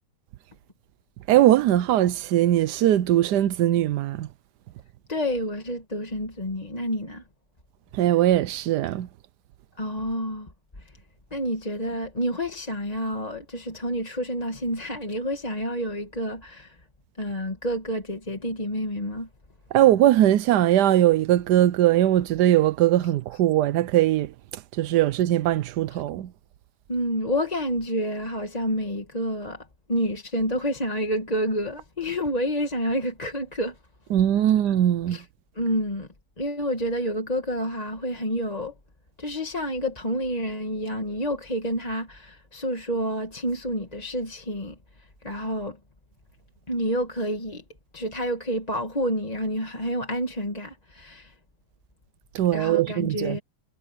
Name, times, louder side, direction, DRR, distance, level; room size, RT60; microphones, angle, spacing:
voice 1, 1.3-4.3 7.9-9.1 19.7-26.3 34.1-35.2 52.3-53.4, right 12 dB, 85° right, 1.3 m, -20 dB
voice 2, 5.1-7.2 9.8-10.5 10.8-11.0 11.3-16.8 17.2-19.3 26.9-33.8 35.1-35.2 35.6-36.1 36.4-38.7 39.2-45.8 46.7-47.6 47.9-51.3 52.5-53.4, equal, 25° left, 1.9 m, -29 dB
omnidirectional pair, 1.7 m